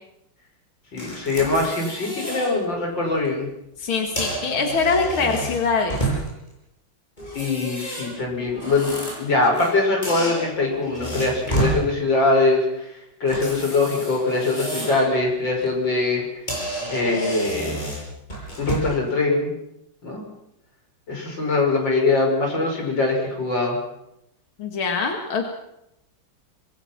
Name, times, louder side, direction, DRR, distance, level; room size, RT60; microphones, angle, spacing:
voice 1, 0.9-3.5 7.3-12.9 13.2-16.2 16.9-17.8 18.6-19.5 20.0-20.2 21.1-23.8, left 3 dB, 65° left, 1 dB, 6.4 m, -22 dB
sound 1, 1.0-2.5 2.9-3.2 3.9-6.5 7.2-9.7 10.0-11.8 13.3-15.1 15.5-15.7 16.2-16.3 16.5-19.0, right 1 dB, 20° left, 7.9 m, -30 dB
voice 2, 3.8-6.0 24.6-25.5, left 4 dB, 85° left, 3 dB, 2.8 m, -23 dB
26.0 x 21.0 x 6.0 m, 0.82 s
omnidirectional pair, 2.2 m